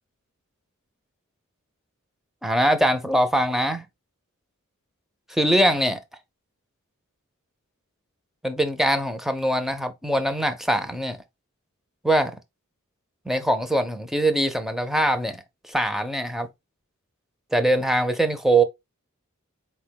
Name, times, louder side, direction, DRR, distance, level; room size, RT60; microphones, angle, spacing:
voice 1, 2.4-3.8 5.4-6.0 8.4-11.2 12.0-12.4 13.3-16.5 17.5-18.6, right 1 dB, ahead, 0.6 m, -22 dB
4.4 x 2.2 x 4.5 m
head